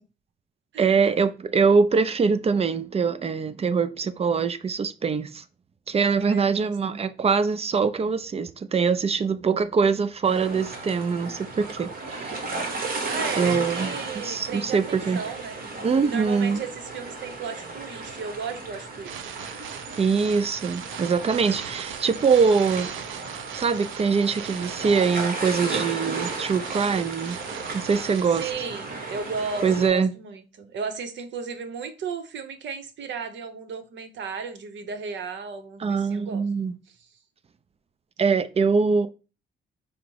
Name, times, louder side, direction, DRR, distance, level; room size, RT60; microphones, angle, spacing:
voice 1, 0.8-5.4 5.9-12.4 13.4-13.9 14.2-15.2 15.8-16.6 20.0-22.9 23.5-27.4 27.7-28.5 29.6-30.1 35.8-36.7 38.2-39.1, right 5 dB, 30° right, 0.5 m, -23 dB
voice 2, 6.1-6.7 13.1-15.6 16.0-19.3 28.3-36.4 37.0-37.1, right 5 dB, 65° right, 0.8 m, -35 dB
sound 1, 10.2-29.9, right 3 dB, 45° right, 1.2 m, -35 dB
sound 2, 19.0-28.5, right 9 dB, 85° right, 0.5 m, -39 dB
5.0 x 2.0 x 4.5 m
cardioid pair, 90°, 20 cm